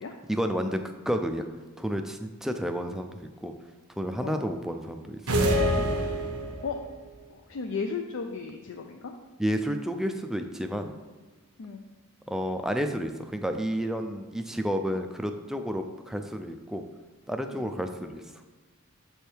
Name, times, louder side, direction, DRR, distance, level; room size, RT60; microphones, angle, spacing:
voice 1, 0.3-1.5 1.8-3.5 4.0-5.4 9.4-11.0 12.3-16.9 17.3-18.2, equal, ahead, 6 dB, 0.3 m, -31 dB
sound 1, 5.3-6.8, equal, 85° right, 0.9 m, -25 dB
voice 2, 7.3-9.1 11.6-11.8 17.5-17.7, left 5 dB, 60° left, 3 dB, 0.4 m, -35 dB
7.2 x 3.4 x 4.5 m, 1.3 s
head